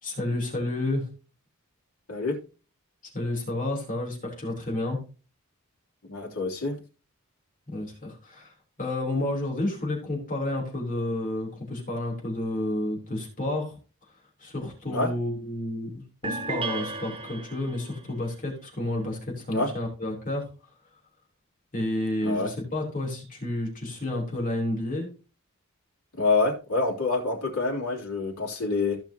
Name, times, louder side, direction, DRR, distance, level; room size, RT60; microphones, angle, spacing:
voice 1, 0.0-1.1 3.1-5.0 7.7-13.8 14.4-15.9 16.2-20.5 21.7-25.1, left 1 dB, 40° left, 3.6 m, -30 dB
voice 2, 2.1-2.4 6.1-6.8 14.9-15.1 19.5-19.7 22.2-22.5 26.2-29.0, left 3 dB, 75° left, 3.2 m, -27 dB
sound 1, 16.2-18.0, right 3 dB, 25° right, 1.1 m, -33 dB
15.5 x 5.8 x 2.9 m
head